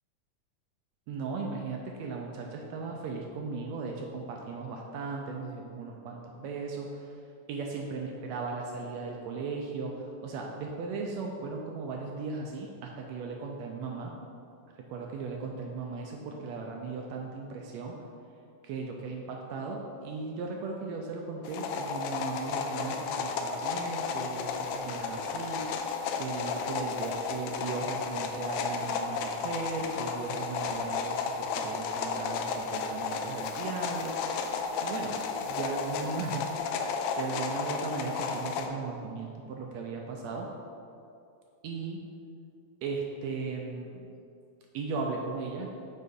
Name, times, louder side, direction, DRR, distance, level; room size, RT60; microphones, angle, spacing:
voice 1, 1.1-7.0 7.5-14.1 14.9-17.9 18.6-25.7 26.1-34.2 34.8-36.5 37.2-40.5 41.6-42.0 42.8-44.0 44.7-45.7, right 4 dB, 80° right, 0 dB, 1.6 m, -37 dB
sound 1, 21.4-38.7, left 5 dB, 80° left, 1.5 m, -33 dB
sound 2, 24.2-36.6, left 1 dB, 65° left, 2.6 m, -55 dB
6.5 x 4.1 x 5.2 m, 2.5 s
omnidirectional pair, 3.6 m